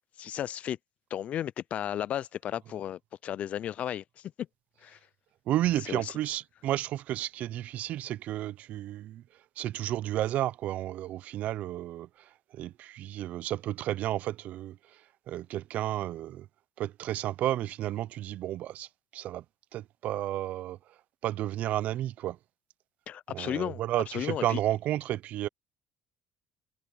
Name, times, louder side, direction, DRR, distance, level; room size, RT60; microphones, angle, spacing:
voice 1, 0.2-0.8 1.1-4.3 4.8-5.0 5.9-6.2 23.1-23.8 24.1-24.6, left 10 dB, 55° left, 0.5 m, -34 dB
voice 2, 5.5-9.2 9.6-12.1 12.5-14.8 15.3-16.5 16.8-18.9 19.1-19.4 19.7-20.8 21.2-22.4 23.3-25.5, right 13 dB, 60° right, 0.7 m, -32 dB
supercardioid pair, 85°, 3 cm